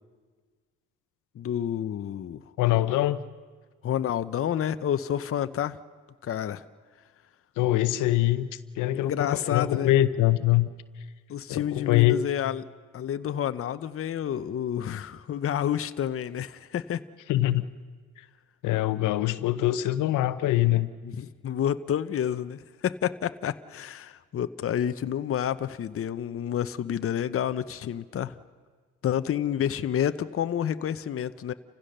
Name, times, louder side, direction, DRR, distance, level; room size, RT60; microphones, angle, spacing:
voice 1, 1.4-2.4 3.8-5.8 6.2-6.6 8.9-9.9 11.3-12.6 12.9-17.0 21.0-28.4 29.0-31.5, left 10 dB, 45° left, 12 dB, 0.8 m, -29 dB
voice 2, 2.6-3.2 7.6-8.5 8.8-10.7 11.5-12.2 17.3-17.6 18.6-20.9, left 15 dB, 90° left, 13 dB, 0.8 m, -23 dB
30.0 x 15.5 x 6.7 m, 1.5 s
cardioid pair, 90°, 30 cm